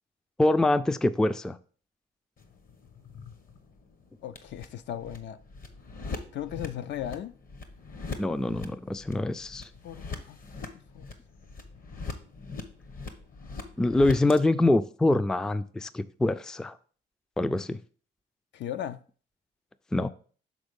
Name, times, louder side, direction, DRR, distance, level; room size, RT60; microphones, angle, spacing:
voice 1, 0.4-1.6 8.2-9.7 13.8-16.7 17.4-17.8 19.9-20.1, left 2 dB, 5° left, 0.3 m, -25 dB
sound 1, 2.4-14.4, left 4 dB, 45° left, 1.0 m, -42 dB
voice 2, 4.2-5.4 6.3-7.3 9.8-10.4 10.9-11.1 18.5-19.0, left 10 dB, 65° left, 0.5 m, -36 dB
6.2 x 3.9 x 5.2 m
cardioid pair, 90°, 20 cm